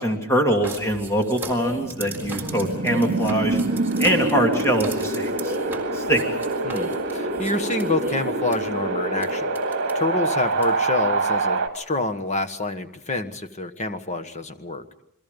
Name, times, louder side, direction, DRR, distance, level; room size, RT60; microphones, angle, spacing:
voice 1, 0.0-3.6 4.0-5.5 5.9-6.2, equal, 15° left, 2 dB, 2.7 m, -23 dB
sound 1, 0.6-8.6 9.2-9.3 9.5-9.9 10.6-10.7, right 1 dB, 10° right, 4.0 m, -35 dB
Wind, 1.7-11.7, right 3 dB, 55° right, 2.3 m, -26 dB
voice 2, 6.6-14.8, left 2 dB, 30° left, 9 dB, 1.4 m, -27 dB
29.0 x 22.0 x 5.3 m, 0.76 s
head